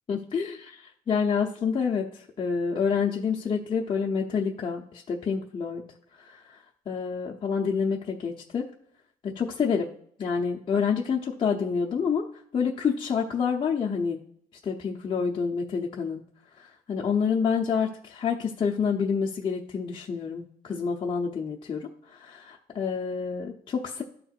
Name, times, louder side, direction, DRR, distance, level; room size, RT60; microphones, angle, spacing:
voice 1, 0.1-5.8 6.2-6.6 6.9-8.6 9.2-9.9 10.2-12.2 12.5-14.2 14.6-16.2 16.6-24.0, left 6 dB, 30° left, -2 dB, 0.8 m, -28 dB
13.5 x 4.5 x 2.5 m, 0.64 s
cardioid pair, 135°, 17 cm